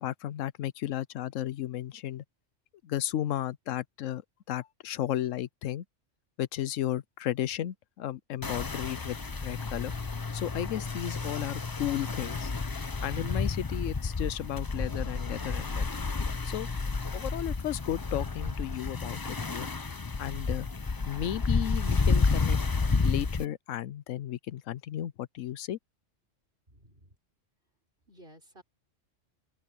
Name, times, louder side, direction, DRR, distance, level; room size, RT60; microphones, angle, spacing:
voice 1, 0.0-2.2 2.8-4.2 4.5-5.8 6.4-9.9 10.3-12.5 13.0-15.9 16.4-16.7 17.1-19.7 20.2-20.7 21.1-25.8, left 12 dB, 85° left, 1.0 m, -34 dB
sound 1, 8.4-23.4, left 4 dB, 25° left, 0.5 m, -31 dB
voice 2, 26.7-27.2 28.1-28.6, right 1 dB, 45° right, 5.7 m, -54 dB
open air
omnidirectional pair, 1.3 m